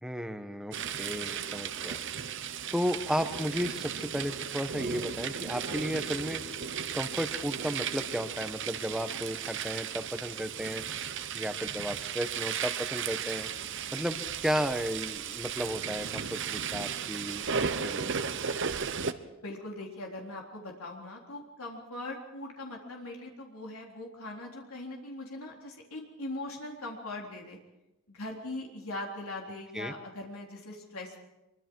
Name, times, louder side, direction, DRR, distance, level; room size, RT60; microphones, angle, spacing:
voice 1, 0.0-2.0 2.7-6.4 6.9-10.8 11.3-13.5 13.9-18.2 29.7-29.9, equal, 5° right, 8 dB, 1.2 m, -34 dB
sound 1, 0.7-19.1, right 7 dB, 60° right, 1.0 m, -35 dB
voice 2, 19.2-27.6 28.1-31.2, left 2 dB, 80° left, 0 dB, 3.6 m, -41 dB
25.0 x 23.5 x 4.7 m, 0.94 s
head